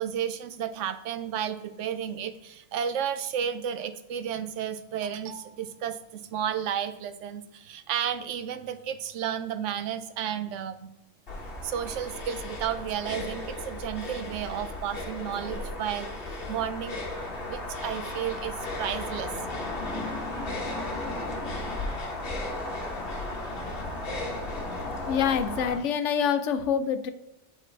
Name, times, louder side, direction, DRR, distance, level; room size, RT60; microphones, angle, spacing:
voice 1, 0.0-10.9 11.6-16.1 16.5-17.0 17.5-19.3, right 9 dB, 85° right, 10 dB, 0.9 m, -32 dB
sound 1, 11.3-25.8, left 2 dB, 50° left, 1.3 m, -35 dB
voice 2, 25.1-27.1, left 7 dB, 80° left, 10 dB, 0.9 m, -26 dB
7.4 x 4.2 x 3.2 m, 0.89 s
omnidirectional pair, 1.2 m